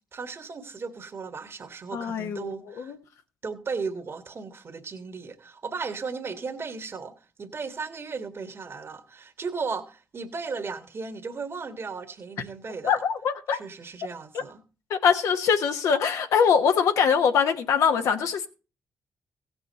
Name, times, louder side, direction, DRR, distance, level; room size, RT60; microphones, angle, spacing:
voice 1, 0.1-2.9 3.4-7.1 7.4-13.0 13.5-14.6, right 4 dB, 50° right, 1.5 m, -36 dB
voice 2, 1.9-3.0 12.8-13.6 14.3-14.4 14.9-18.5, left 6 dB, 80° left, 1.1 m, -23 dB
16.0 x 6.2 x 4.1 m
supercardioid pair, 55°, 5 cm